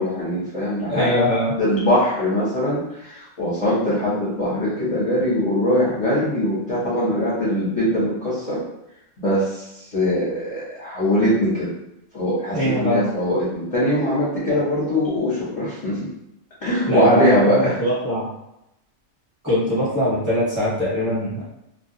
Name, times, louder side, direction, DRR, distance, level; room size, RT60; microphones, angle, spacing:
voice 1, 0.0-8.6 9.2-9.6 9.9-11.7 12.1-16.1 16.6-17.7, left 1 dB, 35° left, -9 dB, 0.6 m, -21 dB
voice 2, 0.9-1.6 12.5-13.1 14.5-14.6 16.9-18.3 19.4-21.4, equal, 10° right, -12 dB, 0.8 m, -22 dB
2.2 x 2.1 x 2.6 m, 0.85 s
omnidirectional pair, 1.4 m